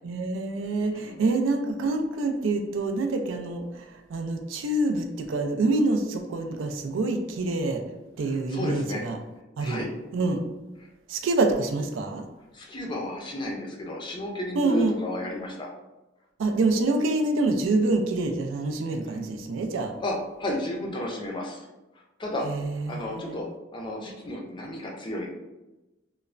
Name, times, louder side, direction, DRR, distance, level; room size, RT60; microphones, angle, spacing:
voice 1, 0.0-7.8 8.2-9.2 9.6-9.8 10.1-10.4 11.1-12.2 14.6-14.9 16.4-19.9 22.4-23.4, right 2 dB, 90° right, 5 dB, 0.4 m, -26 dB
voice 2, 0.9-1.2 8.3-9.0 9.6-9.9 12.5-15.7 20.0-21.7 22.2-22.5 22.9-23.4 23.7-25.3, left 1 dB, 25° left, 0 dB, 0.4 m, -33 dB
3.1 x 2.0 x 2.4 m, 1.0 s
head